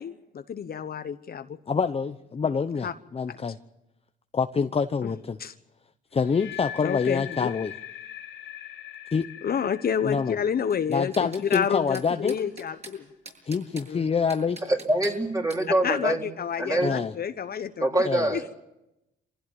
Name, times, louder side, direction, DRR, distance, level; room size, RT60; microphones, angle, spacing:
voice 1, 0.0-1.6 2.8-2.9 5.0-5.1 5.4-5.5 6.8-7.5 9.4-13.0 13.9-14.1 15.8-18.0 18.3-18.4, left 7 dB, 50° left, 9 dB, 1.1 m, -29 dB
voice 2, 1.7-3.6 4.3-5.4 6.1-7.7 9.1-9.3 10.0-10.4 10.9-12.3 13.5-14.6 16.8-17.1 18.0-18.3, left 5 dB, 30° left, 9 dB, 0.8 m, -26 dB
sound 1, 6.1-12.1, left 12 dB, 90° left, 3.4 m, -42 dB
sound 2, 10.7-11.7 11.9-12.9 13.3-13.9 14.3-15.2 15.5-15.6, right 3 dB, 35° right, 7.9 m, -44 dB
voice 3, 14.7-16.2 16.6-16.9 17.8-18.6, right 1 dB, 15° right, 1 dB, 4.0 m, -24 dB
24.5 x 16.0 x 9.0 m, 0.91 s
cardioid pair, 90°, 20 cm